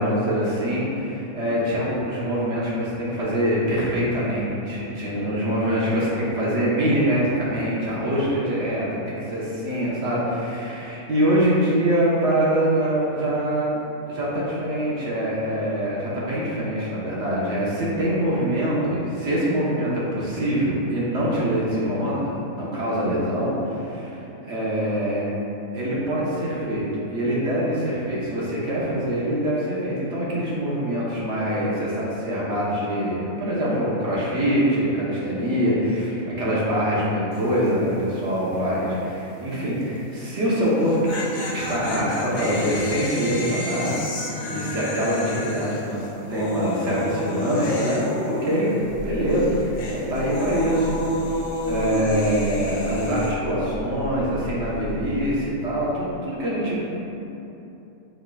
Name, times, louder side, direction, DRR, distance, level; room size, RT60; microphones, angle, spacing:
voice 1, 0.0-13.8 14.1-25.3 25.7-41.1 41.5-43.9 44.5-46.0 46.3-48.7 49.0-51.0 51.6-56.8, equal, 55° right, -7 dB, 1.2 m, -24 dB
sound 1, 37.3-37.7 37.9-38.0 40.7-49.0 49.3-53.3, left 1 dB, 85° left, 0.4 m, -30 dB
sound 2, 48.8-55.4, equal, 35° right, 0.7 m, -36 dB
4.6 x 4.5 x 2.3 m, 2.9 s
omnidirectional pair, 1.5 m